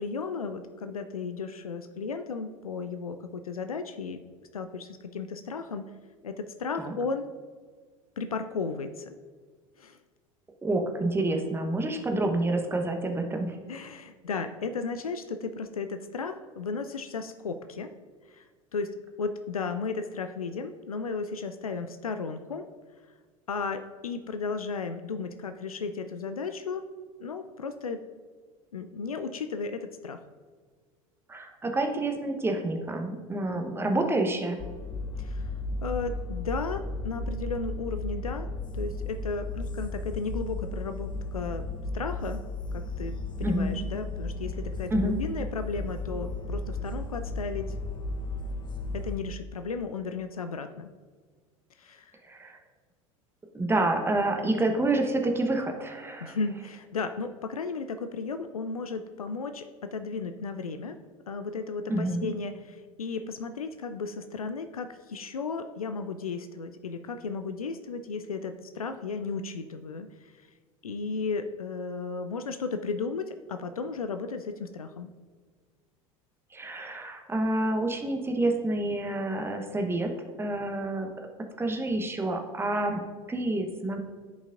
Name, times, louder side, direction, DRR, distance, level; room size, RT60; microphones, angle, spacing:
voice 1, 0.0-4.2 4.5-5.8 6.2-7.2 8.2-9.1 9.8-10.0 13.7-17.9 18.3-18.5 18.7-22.7 23.5-26.8 27.2-28.1 28.7-30.2 35.2-35.5 35.8-38.5 38.7-41.7 41.9-42.4 42.7-47.7 48.9-50.9 51.8-52.2 56.2-61.0 61.3-70.3 70.8-75.1, left 4 dB, 85° left, 9 dB, 0.4 m, -34 dB
voice 2, 10.6-13.6 31.3-34.6 43.4-43.7 44.9-45.2 52.2-52.6 53.5-56.4 61.9-62.3 76.5-80.1 80.4-81.1 81.6-83.0 83.3-84.0, right 2 dB, 15° right, 3 dB, 1.0 m, -28 dB
sound 1, 34.6-49.2, left 2 dB, 25° left, 0.8 m, -34 dB
13.0 x 5.3 x 2.5 m, 1.5 s
figure-of-eight pair, 75°, 18 cm